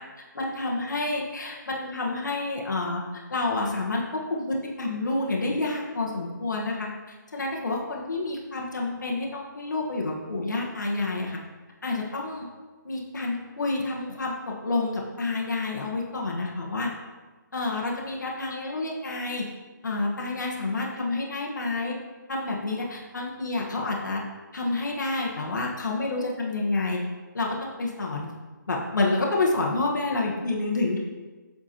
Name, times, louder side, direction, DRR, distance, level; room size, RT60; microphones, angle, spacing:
voice 1, 0.3-3.0 3.3-6.9 7.3-11.4 11.8-12.5 12.8-16.9 17.5-19.4 19.8-22.0 22.3-24.2 24.5-27.0 27.3-28.3 28.7-31.0, left 2 dB, 60° left, -2 dB, 1.3 m, -28 dB
7.5 x 6.2 x 2.9 m, 1.3 s
hypercardioid pair, 180°, 11 cm